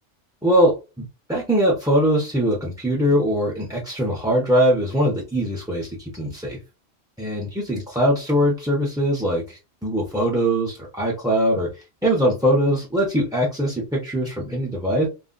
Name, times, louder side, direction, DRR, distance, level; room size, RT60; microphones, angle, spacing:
voice 1, 0.4-1.0 1.3-6.6 7.2-11.7 12.0-15.1, equal, 5° right, -4 dB, 0.4 m, -21 dB
2.4 x 2.1 x 3.7 m, 0.29 s
omnidirectional pair, 1.3 m